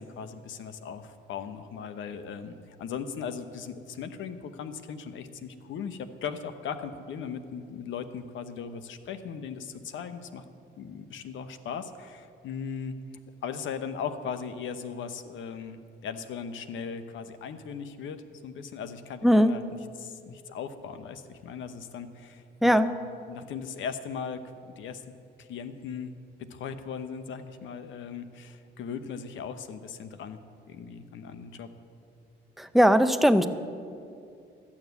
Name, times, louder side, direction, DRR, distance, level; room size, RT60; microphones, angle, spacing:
voice 1, 0.0-10.4 10.8-13.0 13.4-19.6 20.0-22.8 23.3-26.1 26.4-30.4 30.7-31.7, left 6 dB, 75° left, 10 dB, 0.9 m, -38 dB
voice 2, 19.2-19.5 22.6-22.9 32.6-33.5, equal, ahead, 10 dB, 0.6 m, -19 dB
12.5 x 7.3 x 8.0 m, 2.4 s
cardioid pair, 90°, 20 cm